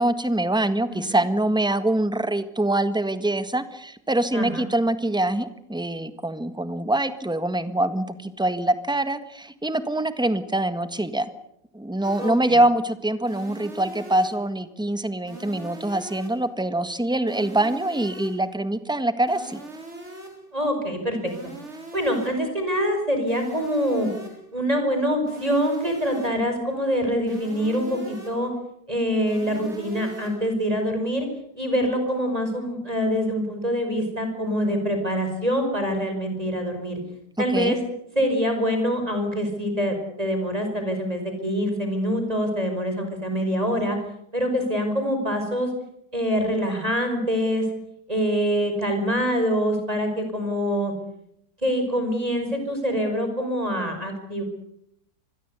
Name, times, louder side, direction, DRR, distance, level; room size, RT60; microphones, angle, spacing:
voice 1, 0.0-11.3 11.7-19.6 37.5-37.8, right 1 dB, 5° right, 11 dB, 1.5 m, -24 dB
voice 2, 4.3-4.6 12.2-12.3 20.5-21.3 21.9-24.1 24.5-28.5 28.9-31.3 31.5-37.0 37.4-37.8 38.2-44.0 44.3-45.7 46.1-47.6 48.1-50.9 51.6-54.4, equal, 20° right, 5 dB, 5.5 m, -25 dB
sound 1, 12.0-12.5 13.3-14.5 15.3-16.5 17.3-18.5 19.3-20.5 21.3-22.5 23.3-24.5 25.3-26.5 27.3-28.5 29.3-30.5, right 2 dB, 40° right, 4.4 m, -41 dB
26.5 x 21.0 x 8.3 m, 0.73 s
omnidirectional pair, 1.8 m